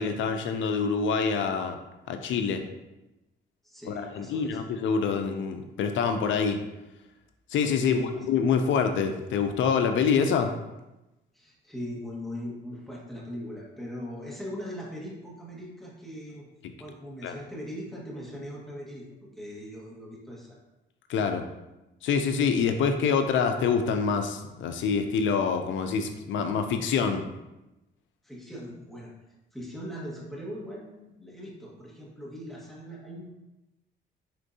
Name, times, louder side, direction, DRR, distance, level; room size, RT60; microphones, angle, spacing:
voice 1, 0.0-1.8 2.1-2.6 3.9-6.6 7.5-10.5 17.2-17.3 21.1-21.4 22.0-27.2, left 6 dB, 70° left, 6 dB, 0.5 m, -26 dB
voice 2, 3.6-4.6 7.9-8.2 11.3-16.4 16.8-20.6 28.2-29.1 29.5-33.3, equal, ahead, -5 dB, 1.3 m, -40 dB
4.4 x 3.6 x 2.7 m, 0.98 s
cardioid pair, 90°, 20 cm